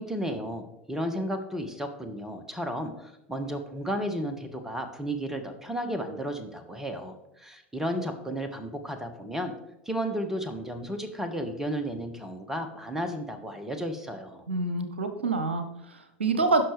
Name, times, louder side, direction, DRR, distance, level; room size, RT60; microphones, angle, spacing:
voice 1, 0.0-9.5 9.8-14.5, equal, 5° right, 7 dB, 1.4 m, -33 dB
voice 2, 14.5-16.6, right 3 dB, 75° right, 8 dB, 0.9 m, -27 dB
16.0 x 6.1 x 3.3 m, 0.87 s
figure-of-eight pair, 80°, 6 cm